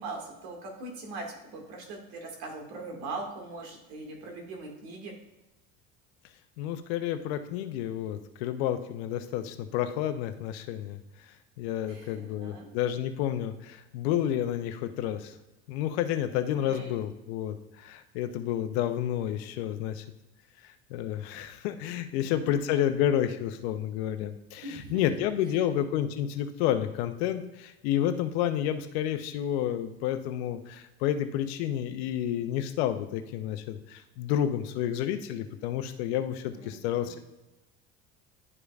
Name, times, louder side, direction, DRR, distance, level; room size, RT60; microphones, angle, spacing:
voice 1, 0.0-5.1 11.9-12.7 16.6-17.0 22.1-22.5 24.6-25.1 25.5-25.7 36.5-37.2, right 2 dB, 75° right, 1 dB, 2.0 m, -41 dB
voice 2, 6.6-11.0 11.6-15.3 15.7-20.0 20.9-37.2, left 11 dB, 80° left, 9 dB, 0.7 m, -30 dB
11.0 x 5.1 x 2.4 m, 0.96 s
supercardioid pair, 90°, 32 cm